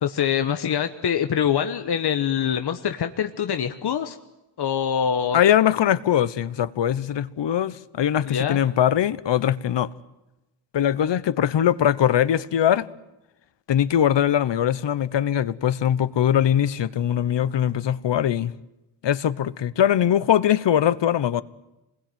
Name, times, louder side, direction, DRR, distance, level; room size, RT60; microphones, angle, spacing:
voice 1, 0.0-4.2 4.6-5.4 8.3-8.6, left 8 dB, 65° left, 1.3 m, -24 dB
voice 2, 5.3-9.9 10.7-12.9 13.7-18.5 19.0-21.4, left 10 dB, 90° left, 1.1 m, -21 dB
28.5 x 21.0 x 9.4 m
wide cardioid pair, 165°, 42 cm